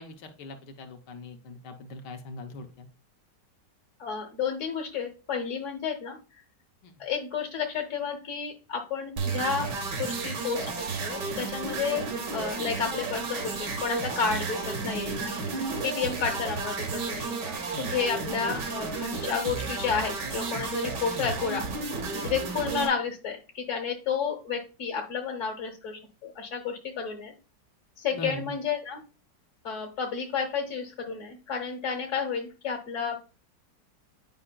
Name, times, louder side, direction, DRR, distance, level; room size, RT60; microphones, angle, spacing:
voice 1, 0.0-2.9 6.8-6.9 18.3-18.7 28.1-28.5, left 1 dB, 75° left, 4 dB, 1.4 m, -41 dB
voice 2, 4.0-6.4 7.0-9.7 10.0-12.1 12.3-27.3 28.0-29.0 29.6-33.2, left 6 dB, 50° left, 1 dB, 1.2 m, -31 dB
sound 1, 9.2-22.9, right 4 dB, 75° right, 1.8 m, -32 dB
10.0 x 4.8 x 2.2 m, 0.33 s
omnidirectional pair, 1.9 m